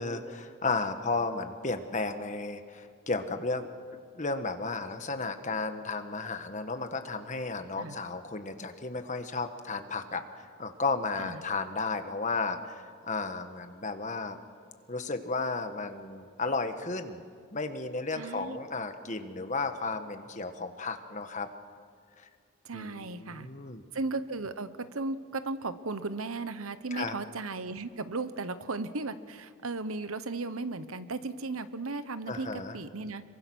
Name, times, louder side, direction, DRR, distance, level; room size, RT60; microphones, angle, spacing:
voice 1, 0.0-3.7 4.1-14.4 14.9-17.2 17.5-21.5 22.2-22.3 22.7-23.8 26.9-27.1 32.3-32.8, left 3 dB, 35° left, 8 dB, 1.4 m, -33 dB
voice 2, 18.1-18.6 22.6-23.5 23.9-24.7 24.9-33.2, right 3 dB, 80° right, 12 dB, 1.1 m, -36 dB
26.5 x 23.5 x 6.3 m, 2.2 s
head